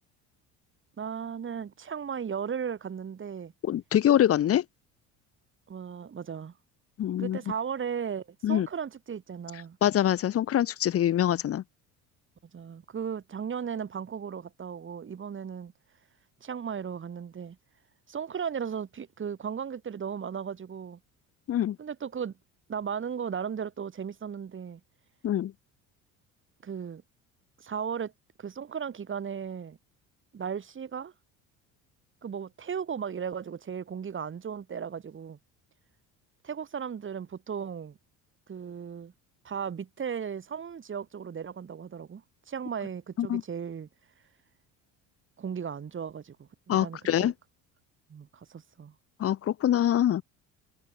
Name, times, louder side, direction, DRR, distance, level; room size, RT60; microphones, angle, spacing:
voice 1, 1.0-3.5 5.7-6.5 7.2-9.8 12.5-15.7 16.4-17.6 18.1-21.0 21.8-22.3 22.7-24.8 26.6-27.0 27.6-28.1 28.4-29.8 30.3-31.1 32.2-35.4 36.4-38.0 38.5-39.1 39.4-43.9 45.4-47.3 48.1-48.9, right 7 dB, 35° right, 2.3 m, -36 dB
voice 2, 3.6-4.6 7.0-7.4 8.4-8.7 9.8-11.6 21.5-21.8 25.2-25.5 43.2-43.4 46.7-47.3 49.2-50.2, left 11 dB, 40° left, 0.8 m, -24 dB
supercardioid pair, 85°, 37 cm